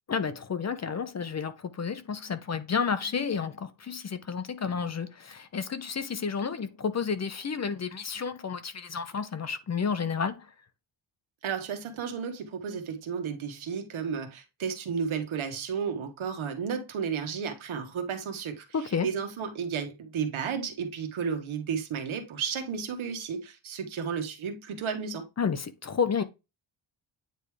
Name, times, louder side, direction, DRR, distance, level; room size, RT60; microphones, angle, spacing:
voice 1, 0.1-10.5 18.7-19.1 25.4-26.2, left 6 dB, 35° left, 0.6 m, -31 dB
voice 2, 11.4-25.3, right 6 dB, 90° right, 1.4 m, -33 dB
9.1 x 3.5 x 3.2 m
wide cardioid pair, 125°, 47 cm